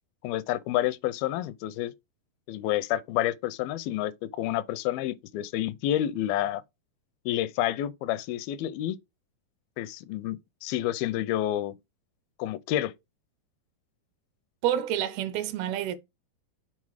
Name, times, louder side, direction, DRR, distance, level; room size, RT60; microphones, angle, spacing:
voice 1, 0.2-1.9 2.5-6.6 7.3-9.0 9.8-11.7 12.4-12.9, left 13 dB, 80° left, 2.3 m, -29 dB
voice 2, 14.6-16.0, right 10 dB, 80° right, 2.5 m, -28 dB
7.4 x 4.2 x 4.8 m
omnidirectional pair, 4.6 m